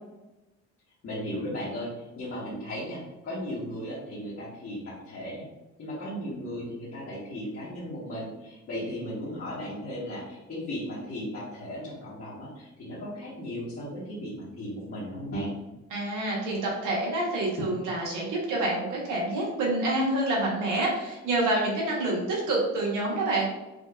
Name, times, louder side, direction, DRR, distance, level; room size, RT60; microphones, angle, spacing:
voice 1, 1.0-5.4 5.8-15.5, equal, 50° left, -10 dB, 1.3 m, -36 dB
voice 2, 15.9-23.5, right 2 dB, 85° right, -3 dB, 1.4 m, -27 dB
5.1 x 2.4 x 2.5 m, 1.0 s
cardioid pair, 90°, 30 cm